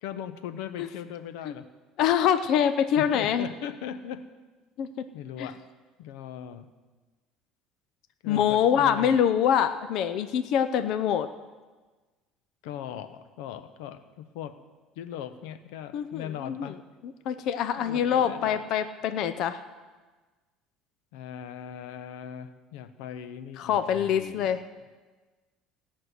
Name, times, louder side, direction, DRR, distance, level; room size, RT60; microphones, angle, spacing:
voice 1, 0.0-1.7 3.0-4.3 5.1-5.6 6.0-6.7 8.2-9.2 12.6-14.6 15.0-16.8 17.8-18.6 21.1-24.6, left 9 dB, 90° left, 12 dB, 0.8 m, -39 dB
voice 2, 2.0-3.5 4.8-4.9 5.4-5.5 8.3-11.3 15.9-16.7 17.3-19.6 23.6-24.6, left 9 dB, 55° left, 11 dB, 0.7 m, -25 dB
17.0 x 6.3 x 9.5 m, 1.3 s
cardioid pair, 140°, 0 cm